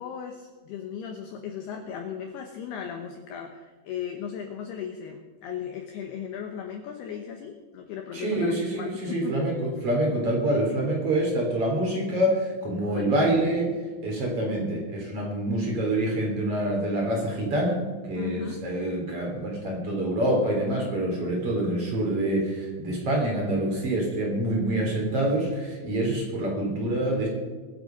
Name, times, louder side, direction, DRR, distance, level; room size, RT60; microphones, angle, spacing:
voice 1, 0.0-9.5 12.9-13.3 18.2-18.6, left 8 dB, 75° left, 3 dB, 2.5 m, -37 dB
voice 2, 8.1-13.7 14.0-17.8 18.1-27.3, right 1 dB, 30° right, -1 dB, 4.0 m, -26 dB
23.5 x 8.3 x 5.3 m, 1.4 s
omnidirectional pair, 5.8 m